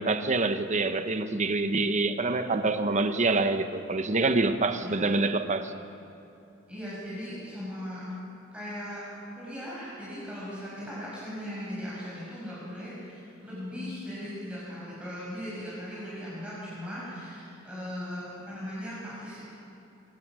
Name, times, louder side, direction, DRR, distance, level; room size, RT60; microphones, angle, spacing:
voice 1, 0.0-5.7, right 3 dB, 35° right, 1.1 m, -26 dB
voice 2, 4.7-5.2 6.7-8.0 8.5-9.0 9.4-19.5, equal, 5° right, 6.6 m, -38 dB
23.5 x 20.5 x 6.3 m
head